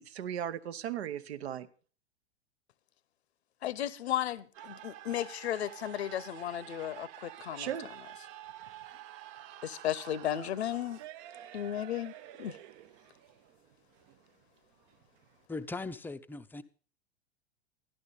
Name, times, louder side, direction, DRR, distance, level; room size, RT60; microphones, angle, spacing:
voice 1, 0.0-1.7 7.6-7.9, right 10 dB, 70° right, 0.9 m, -37 dB
voice 2, 3.6-7.7 9.6-11.0 11.5-12.1 12.4-12.6, left 11 dB, 75° left, 0.9 m, -34 dB
sound 1, 4.5-15.5, right 13 dB, 45° right, 0.6 m, -49 dB
voice 3, 15.5-16.6, left 3 dB, 5° left, 0.5 m, -39 dB
13.0 x 11.5 x 4.0 m
hypercardioid pair, 100°, 33 cm